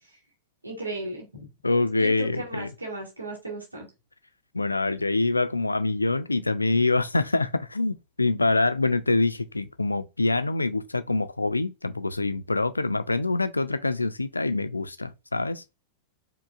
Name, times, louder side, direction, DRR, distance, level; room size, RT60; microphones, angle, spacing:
voice 1, 0.6-1.4 2.0-3.9, right 2 dB, 80° right, 1.3 m, -35 dB
voice 2, 1.6-2.7 4.5-15.6, left 3 dB, 80° left, 0.3 m, -25 dB
4.9 x 2.6 x 2.4 m
figure-of-eight pair, 90°, 0 cm